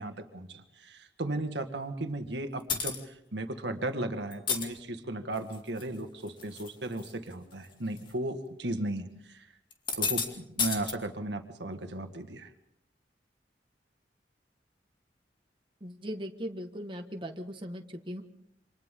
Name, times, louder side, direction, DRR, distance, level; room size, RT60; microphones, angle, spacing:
voice 1, 0.0-9.5 9.9-12.5, right 1 dB, 75° right, 6 dB, 1.8 m, -36 dB
sound 1, 2.7-3.0 4.3-4.7 5.4-5.8 6.3-6.7 7.0-7.1 8.0-8.1 9.7-10.3 10.6-10.9, left 5 dB, 25° left, 2.5 m, -30 dB
voice 2, 15.8-18.2, equal, 30° right, 3 dB, 1.6 m, -39 dB
28.5 x 26.0 x 3.8 m, 0.80 s
head